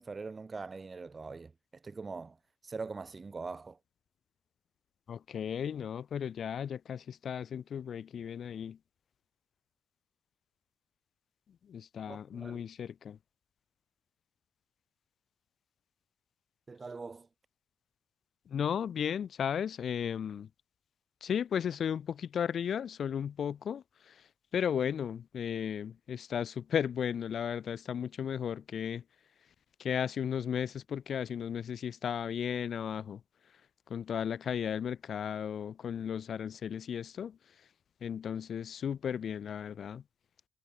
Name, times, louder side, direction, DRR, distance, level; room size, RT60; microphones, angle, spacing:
voice 1, 0.0-2.4 2.6-3.8 12.1-12.6 16.7-17.3, right 4 dB, 30° right, 0.6 m, -42 dB
voice 2, 5.1-8.8 11.7-13.2 18.5-20.5 21.2-24.3 24.5-29.0 29.8-33.2 33.9-37.4 38.0-40.0, left 8 dB, 55° left, 0.6 m, -35 dB
cardioid pair, 90°, 0 cm